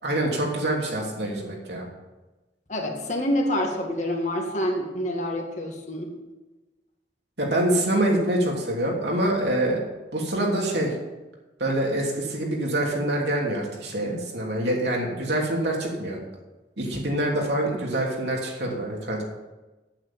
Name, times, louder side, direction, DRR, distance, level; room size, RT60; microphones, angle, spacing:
voice 1, 0.0-1.9 7.4-9.8 10.1-10.9 11.6-16.2 16.8-19.2, right 1 dB, 65° right, -2 dB, 3.1 m, -25 dB
voice 2, 2.7-6.1, left 1 dB, 40° left, 1 dB, 1.9 m, -27 dB
9.3 x 8.8 x 7.6 m, 1.1 s
head